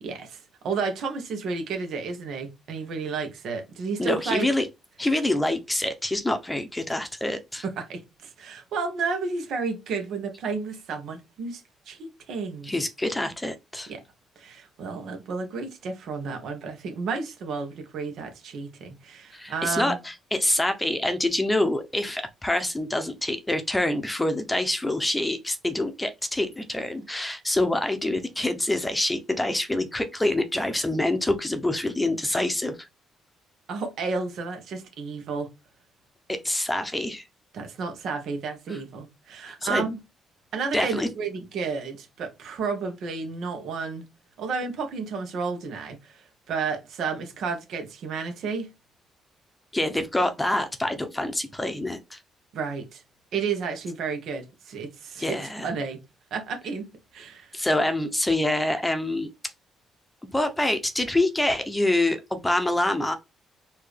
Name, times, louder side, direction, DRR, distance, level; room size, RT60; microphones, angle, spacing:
voice 1, 0.0-4.5 7.6-11.6 11.9-12.8 13.9-14.0 14.4-20.0 33.7-35.5 37.5-40.0 40.5-44.0 44.4-48.7 52.5-53.0 53.3-56.0 56.3-57.5, right 5 dB, 75° right, 1.2 m, -32 dB
voice 2, 4.0-4.7 5.0-7.6 12.7-13.9 19.3-32.9 36.3-37.3 38.7-38.8 39.4-39.8 40.7-41.1 49.7-52.2 55.2-55.7 57.5-59.3 60.3-63.1, left 1 dB, 10° left, 0.7 m, -26 dB
4.5 x 2.8 x 3.2 m
cardioid pair, 90°, 0 cm